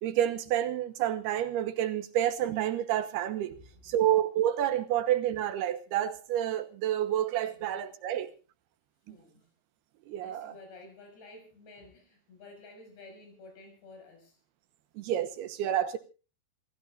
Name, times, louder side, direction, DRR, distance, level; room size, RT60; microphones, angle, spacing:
voice 1, 0.0-3.6 3.8-8.3 9.1-9.2 10.1-10.5 15.0-16.0, right 11 dB, 75° right, 2.9 m, -29 dB
voice 2, 3.5-4.0 7.6-7.7 9.1-9.5 10.2-14.4, left 2 dB, 70° left, 8.3 m, -52 dB
27.0 x 16.5 x 2.5 m
omnidirectional pair, 5.1 m